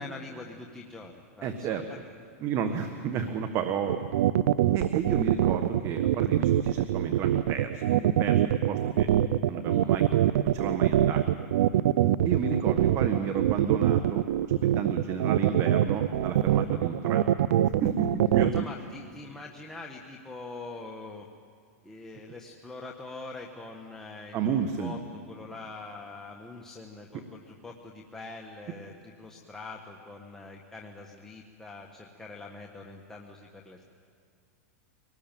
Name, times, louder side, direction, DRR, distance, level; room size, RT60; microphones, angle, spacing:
voice 1, 0.0-1.8 18.5-21.2 21.8-24.4 24.8-33.9, left 3 dB, 5° left, -1 dB, 1.5 m, -43 dB
voice 2, 1.4-1.9 2.4-4.0 4.7-9.1 9.5-10.2 10.4-11.2 12.2-17.3 17.8-18.5 24.3-24.9, right 7 dB, 35° right, 8 dB, 1.5 m, -32 dB
sound 1, 3.9-18.6, right 12 dB, 75° right, 0.6 m, -23 dB
24.5 x 19.0 x 9.2 m, 2.3 s
hypercardioid pair, 135°, 8 cm